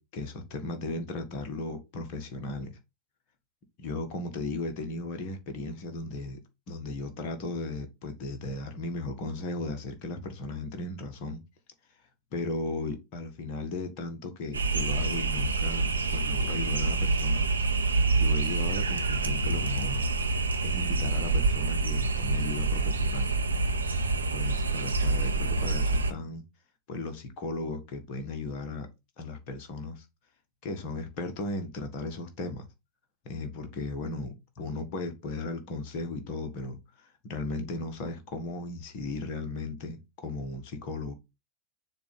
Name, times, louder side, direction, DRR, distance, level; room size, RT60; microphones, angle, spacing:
voice 1, 0.0-2.8 3.8-11.4 12.3-17.5 18.2-20.1 20.6-23.3 24.3-26.4 26.9-28.9 29.2-30.0 30.6-32.7 33.2-41.1, left 2 dB, 40° left, 1.5 m, -36 dB
sound 1, 14.5-26.1, right 3 dB, 75° right, 0.8 m, -27 dB
6.8 x 2.7 x 5.4 m
figure-of-eight pair, 90°, 0 cm